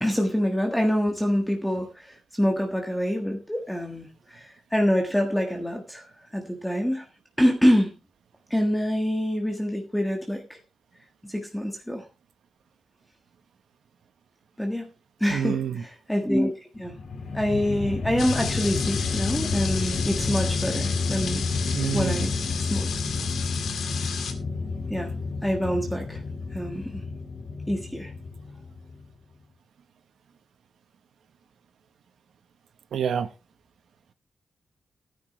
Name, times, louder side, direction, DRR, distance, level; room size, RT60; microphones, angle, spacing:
voice 1, 0.0-7.0 7.4-7.9 8.5-10.6 11.2-12.1 14.6-14.9 15.2-17.0 17.3-21.5 21.9-22.3 22.6-22.9 24.9-25.1 25.4-26.2 26.5-27.0 27.7-28.1, equal, 5° left, 1.5 m, -26 dB
voice 2, 15.3-15.8 21.7-22.3 32.9-33.3, right 7 dB, 85° right, 1.1 m, -27 dB
sound 1, 16.8-29.1, left 4 dB, 60° left, 2.1 m, -30 dB
sound 2, 18.2-24.3, left 6 dB, 90° left, 2.1 m, -33 dB
16.0 x 9.9 x 3.2 m
wide cardioid pair, 155°, 0 cm